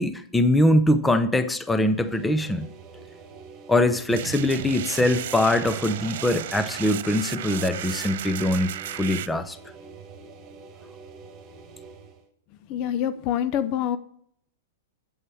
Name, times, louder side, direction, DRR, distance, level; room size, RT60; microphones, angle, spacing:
voice 1, 0.0-2.7 3.7-9.6, left 1 dB, 5° left, 11 dB, 0.8 m, -22 dB
sound 1, 1.8-12.3, right 4 dB, 35° right, 2.0 m, -46 dB
sound 2, 4.1-9.3, right 12 dB, 65° right, 0.5 m, -34 dB
voice 2, 12.7-14.0, left 10 dB, 45° left, 14 dB, 0.6 m, -26 dB
8.1 x 7.2 x 7.7 m, 0.66 s
hypercardioid pair, 120°, 0 cm